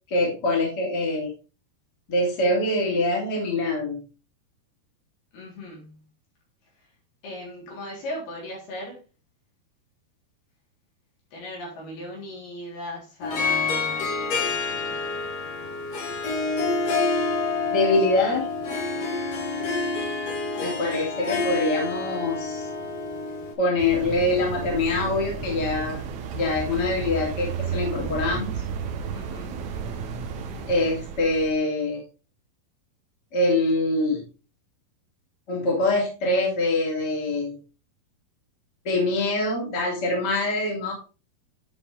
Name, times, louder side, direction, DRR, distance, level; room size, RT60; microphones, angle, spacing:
voice 1, 0.1-1.3 2.1-4.0 17.7-18.5 20.6-22.7 23.6-26.0 26.3-28.6 30.7-32.0 33.3-34.2 35.5-37.6 38.8-40.9, left 2 dB, 30° left, 3.1 m, -24 dB
voice 2, 5.3-6.0 7.2-9.0 11.3-15.3 29.1-29.7, left 1 dB, 75° left, 5.8 m, -38 dB
Harp, 13.2-23.5, left 4 dB, 50° left, 2.6 m, -28 dB
sound 1, 23.8-31.5, right 6 dB, 65° right, 2.0 m, -33 dB
10.5 x 5.2 x 3.7 m
omnidirectional pair, 4.4 m